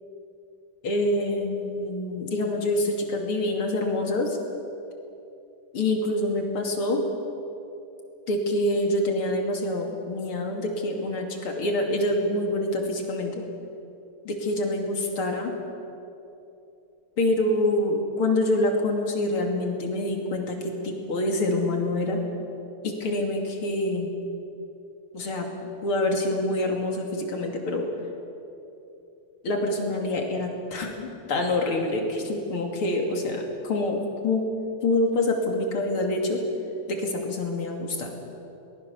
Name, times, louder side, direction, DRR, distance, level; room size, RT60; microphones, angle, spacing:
voice 1, 0.8-4.4 5.7-7.0 8.3-13.4 14.3-15.5 17.2-22.2 22.8-24.1 25.1-27.9 29.4-34.5 34.8-36.4 36.9-38.1, left 1 dB, 75° left, 2 dB, 3.5 m, -26 dB
22.5 x 20.0 x 7.1 m, 2.8 s
omnidirectional pair, 2.4 m